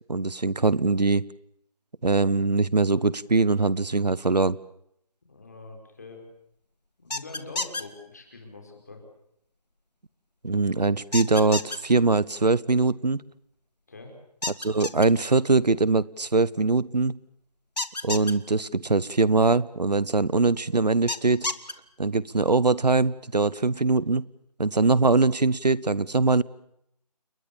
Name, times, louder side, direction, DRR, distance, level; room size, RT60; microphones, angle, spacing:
voice 1, 0.1-1.2 2.0-4.6 10.4-13.2 14.6-17.2 18.0-21.5 22.0-24.2 24.6-26.4, right 3 dB, 80° right, 21 dB, 1.1 m, -22 dB
voice 2, 5.3-6.2 7.0-9.0 13.9-14.2, left 3 dB, 25° left, 3 dB, 4.8 m, -44 dB
sound 1, 7.1-7.8 11.1-11.8 14.4-15.1 17.8-18.3 21.1-21.7, left 2 dB, 85° left, 2.0 m, -29 dB
29.5 x 20.5 x 7.1 m, 0.74 s
figure-of-eight pair, 175°, 21 cm